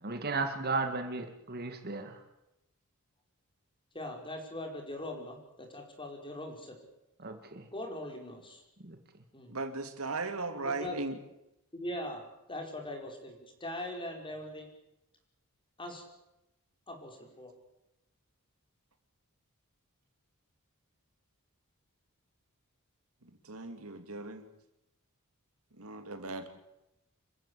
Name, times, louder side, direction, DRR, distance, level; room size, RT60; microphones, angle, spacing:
voice 1, 0.0-2.2 7.2-7.7 8.8-9.0, right 3 dB, 45° right, 7 dB, 2.3 m, -35 dB
voice 2, 3.9-6.8 7.7-8.6 9.3-9.6 10.6-11.0 11.7-12.2 12.5-14.7 15.8-16.1 16.9-17.5, left 1 dB, 25° left, 3 dB, 5.1 m, -41 dB
voice 3, 9.5-11.2 23.2-24.5 25.7-26.6, right 3 dB, 70° right, 8 dB, 2.4 m, -37 dB
27.5 x 15.5 x 8.5 m, 0.88 s
head